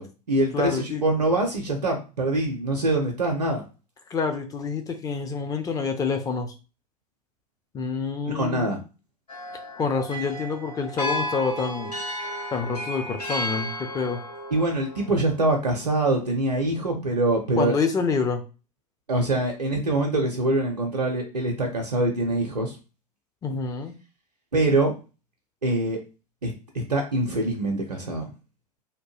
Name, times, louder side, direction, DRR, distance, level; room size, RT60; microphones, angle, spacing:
voice 1, 0.0-3.6 8.2-8.8 14.5-17.7 19.1-22.7 24.5-24.9 25.6-26.0 26.4-28.3, right 2 dB, 85° right, 2 dB, 0.5 m, -24 dB
voice 2, 0.5-1.0 4.1-6.5 7.7-8.7 9.8-12.0 12.5-14.2 17.6-18.4 23.4-23.9, left 5 dB, 20° left, 5 dB, 0.5 m, -27 dB
sound 1, 9.3-15.5, equal, 80° left, 0.7 m, -33 dB
2.8 x 2.1 x 3.0 m, 0.32 s
figure-of-eight pair, 85°, 20 cm